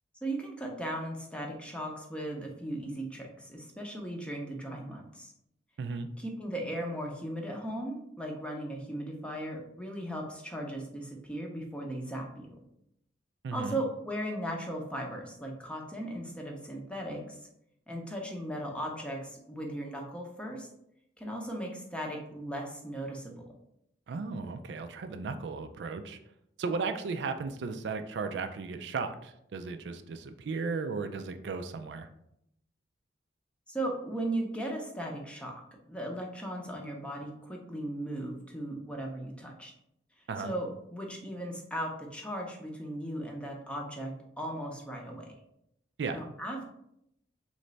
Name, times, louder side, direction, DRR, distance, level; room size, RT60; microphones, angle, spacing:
voice 1, 0.2-5.3 6.2-12.6 13.5-17.4 17.9-20.7 21.2-23.4 33.7-35.6 35.9-39.7 40.4-45.4 46.1-46.7, right 1 dB, 5° left, 0 dB, 0.6 m, -37 dB
voice 2, 5.8-6.1 13.4-13.8 24.1-26.2 26.6-32.1 40.3-40.5 46.0-46.2, right 4 dB, 70° right, 8 dB, 0.3 m, -35 dB
3.2 x 3.1 x 3.9 m, 0.76 s
head